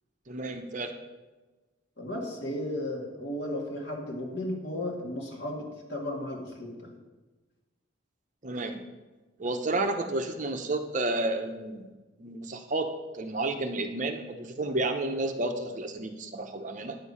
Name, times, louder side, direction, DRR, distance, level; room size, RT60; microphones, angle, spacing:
voice 1, 0.3-0.9 8.4-8.8 9.4-11.9 12.2-17.0, right 2 dB, 40° right, 6 dB, 0.7 m, -31 dB
voice 2, 2.0-6.9, left 1 dB, 60° left, -1 dB, 2.2 m, -34 dB
9.4 x 6.7 x 5.5 m, 1.2 s
head